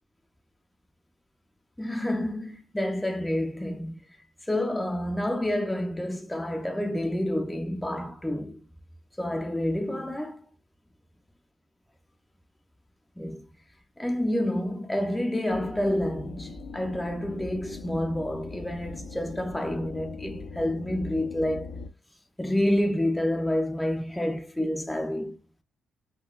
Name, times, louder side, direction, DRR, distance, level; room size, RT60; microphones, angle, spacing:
voice 1, 1.8-4.0 4.4-8.6 9.2-10.4 13.2-13.5 14.0-21.7 22.4-25.4, left 1 dB, 5° left, 0.5 m, -29 dB
sound 1, 15.5-21.9, left 4 dB, 75° left, 0.6 m, -40 dB
3.7 x 2.2 x 2.3 m
cardioid pair, 90°, 0 cm